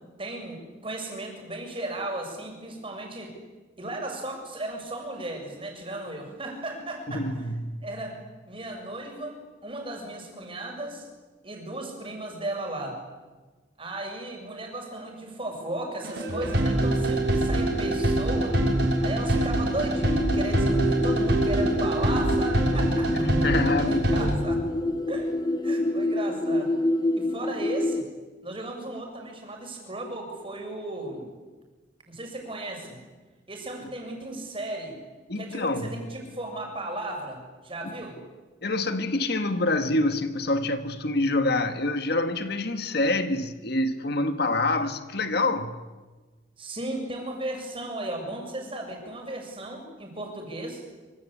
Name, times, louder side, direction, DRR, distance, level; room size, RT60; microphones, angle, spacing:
voice 1, 0.2-3.3 3.8-7.3 7.8-8.2 8.5-11.1 11.4-13.0 13.8-18.6 19.0-23.5 23.8-24.6 25.1-25.3 25.6-26.7 27.2-28.1 28.4-31.3 32.1-33.0 33.5-35.0 35.3-38.2 46.6-50.8, right 1 dB, 30° right, 6.8 m, -35 dB
voice 2, 7.1-7.9 23.2-24.4 35.3-36.0 37.8-37.9 38.6-45.8, left 2 dB, 55° left, 1.8 m, -26 dB
sound 1, 15.7-28.0, left 1 dB, 20° left, 1.2 m, -29 dB
sound 2, 16.0-24.3, right 1 dB, 65° right, 6.2 m, -25 dB
26.5 x 26.0 x 8.6 m
head